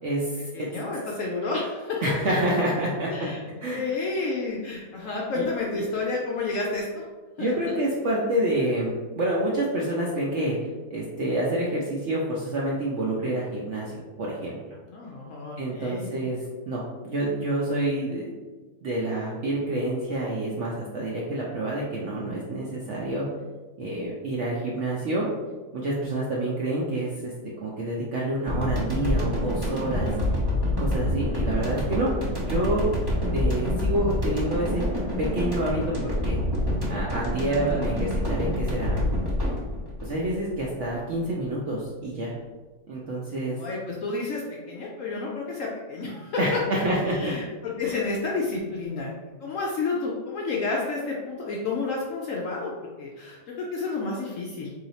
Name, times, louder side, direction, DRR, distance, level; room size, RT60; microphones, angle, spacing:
voice 1, 0.0-0.7 2.0-3.3 3.6-3.9 5.4-5.5 7.4-10.6 10.9-13.9 14.2-14.6 15.6-16.4 16.7-18.3 18.8-23.3 23.8-25.3 25.7-27.3 27.6-30.1 30.8-32.1 32.5-32.9 33.3-34.8 35.2-36.4 36.9-39.0 40.0-42.3 42.9-43.6 46.4-47.3 47.8-47.9, right 1 dB, 65° right, -4 dB, 0.7 m, -28 dB
voice 2, 0.5-2.0 3.1-3.4 3.7-7.0 7.4-7.5 14.9-16.1 37.5-37.8 43.6-46.6 47.1-49.1 49.4-54.7, left 3 dB, 70° left, -3 dB, 0.8 m, -30 dB
sound 1, 28.5-40.9, left 1 dB, 30° right, 0.4 m, -27 dB
3.1 x 2.8 x 4.0 m, 1.3 s
omnidirectional pair, 1.8 m